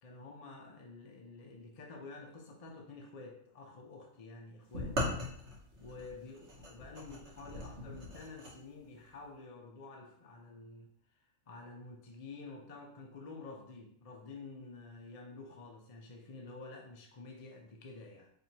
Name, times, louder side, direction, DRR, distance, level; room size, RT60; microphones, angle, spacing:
voice 1, 0.0-5.0 5.8-10.9 11.1-18.3, left 3 dB, 50° left, 0 dB, 0.4 m, -50 dB
sound 1, 4.7-8.5, left 1 dB, 55° right, 1.2 m, -39 dB
4.4 x 3.0 x 2.8 m, 0.67 s
omnidirectional pair, 1.4 m